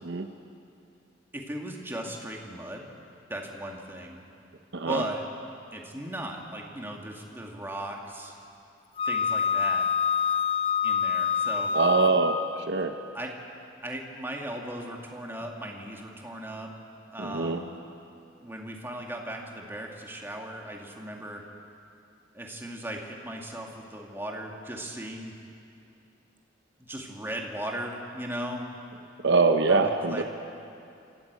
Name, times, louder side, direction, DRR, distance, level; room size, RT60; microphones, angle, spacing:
voice 1, 1.3-2.9 3.3-4.2 4.9-5.2 5.7-8.4 9.0-9.9 10.8-11.7 13.1-13.3 13.8-16.7 17.1-17.7 18.4-21.4 22.3-25.3 26.8-28.6 29.7-30.2, right 1 dB, 10° right, 0 dB, 2.1 m, -37 dB
voice 2, 4.7-5.0 11.7-12.9 17.2-17.6 29.2-30.2, right 3 dB, 60° right, 6 dB, 0.9 m, -24 dB
Wind instrument woodwind instrument, 9.0-12.6, left 6 dB, 25° left, 0.7 m, -26 dB
26.0 x 14.0 x 8.2 m, 2.6 s
head